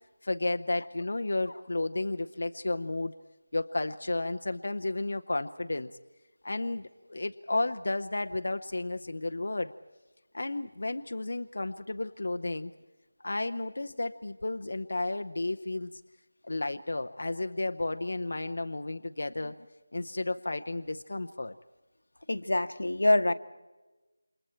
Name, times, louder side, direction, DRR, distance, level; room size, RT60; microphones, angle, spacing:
voice 1, 0.2-3.1 3.5-5.9 6.4-9.7 10.3-12.7 13.2-16.0 16.4-19.6 19.9-21.5, left 2 dB, 50° left, 7 dB, 0.7 m, -32 dB
voice 2, 22.3-23.3, left 1 dB, 85° left, 12 dB, 1.1 m, -25 dB
29.5 x 26.5 x 4.5 m, 1.1 s
figure-of-eight pair, 180°, 0 cm